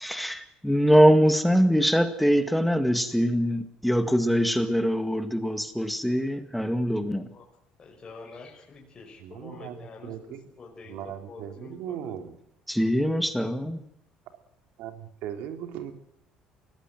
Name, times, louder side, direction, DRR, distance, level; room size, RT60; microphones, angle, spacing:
voice 1, 0.0-7.3 12.7-13.8, equal, ahead, 9 dB, 1.9 m, -23 dB
voice 2, 7.8-11.0 11.3-12.1, left 4 dB, 30° left, 0 dB, 5.5 m, -46 dB
voice 3, 9.2-9.7 10.0-10.4 10.9-12.3 14.8-15.9, right 9 dB, 75° right, 8 dB, 3.3 m, -38 dB
23.5 x 18.0 x 7.7 m, 0.75 s
cardioid pair, 120°, 3 cm